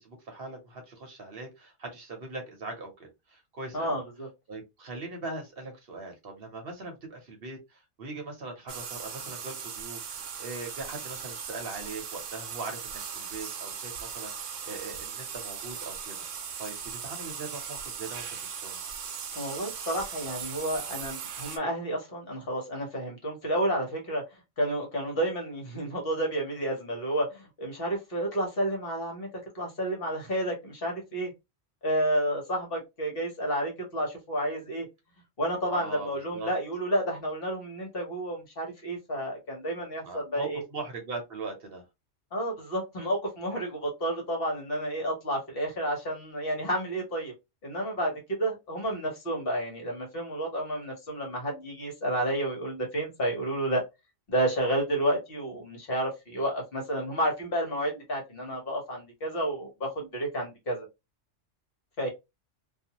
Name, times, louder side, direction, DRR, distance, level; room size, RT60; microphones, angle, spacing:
voice 1, 0.0-4.0 4.5-10.1 10.4-16.2 16.6-18.8 35.7-36.5 40.0-41.8, right 3 dB, 55° right, 1.0 m, -40 dB
voice 2, 3.7-4.3 19.3-24.2 24.6-29.3 29.5-31.3 31.8-34.9 35.4-40.6 42.3-47.3 47.6-53.8 54.3-60.9 62.0-62.1, right 1 dB, 50° left, 1.2 m, -30 dB
sound 1, 8.7-21.6, right 7 dB, 80° right, 1.0 m, -38 dB
2.6 x 2.4 x 2.8 m
omnidirectional pair, 1.3 m